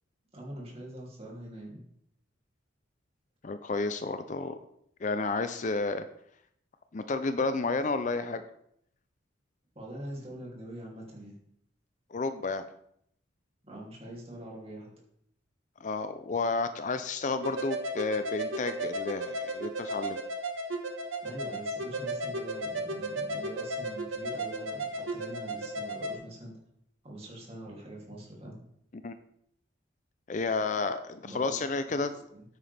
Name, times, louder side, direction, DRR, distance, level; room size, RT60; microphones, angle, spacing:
voice 1, 0.3-1.8 9.7-11.4 13.6-14.9 21.2-26.5 27.0-28.6 31.2-31.6 32.0-32.4, right 1 dB, 30° right, -3 dB, 2.8 m, -43 dB
voice 2, 3.4-4.6 5.0-6.0 6.9-8.4 12.1-12.6 15.8-20.2 29.0-29.2 30.3-32.1, left 3 dB, 40° left, 10 dB, 0.4 m, -31 dB
sound 1, 17.4-26.1, right 1 dB, 90° right, 1.4 m, -34 dB
9.5 x 9.0 x 3.4 m, 0.71 s
head